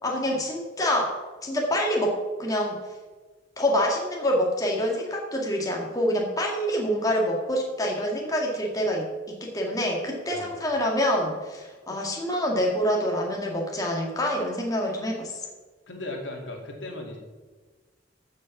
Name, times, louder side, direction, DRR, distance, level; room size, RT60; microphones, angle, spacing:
voice 1, 0.0-2.8 3.6-15.3, equal, 20° left, -1 dB, 1.8 m, -26 dB
voice 2, 15.9-17.2, left 2 dB, 75° left, 1 dB, 2.4 m, -36 dB
14.0 x 6.5 x 5.9 m, 1.3 s
head